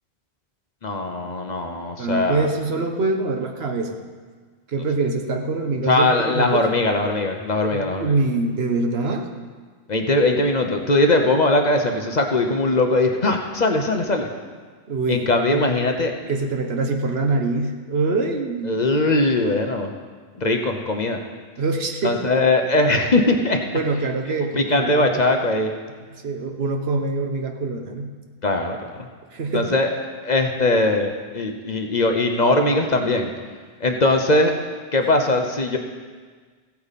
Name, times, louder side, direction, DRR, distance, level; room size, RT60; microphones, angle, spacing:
voice 1, 0.8-2.5 5.9-8.1 9.9-14.3 15.1-16.1 18.6-19.9 20.4-21.2 22.0-23.6 24.5-25.7 28.4-29.1 29.5-29.9 30.2-33.3 33.8-34.5 34.9-35.8, left 2 dB, 45° left, 4 dB, 0.9 m, -20 dB
voice 2, 2.0-4.0 4.7-6.7 7.7-9.3 14.9-15.8 16.3-18.7 21.6-22.2 23.7-25.1 26.1-28.1 29.3-29.7, right 3 dB, 70° right, 4 dB, 1.2 m, -24 dB
16.0 x 8.5 x 4.1 m, 1.5 s
omnidirectional pair, 1.1 m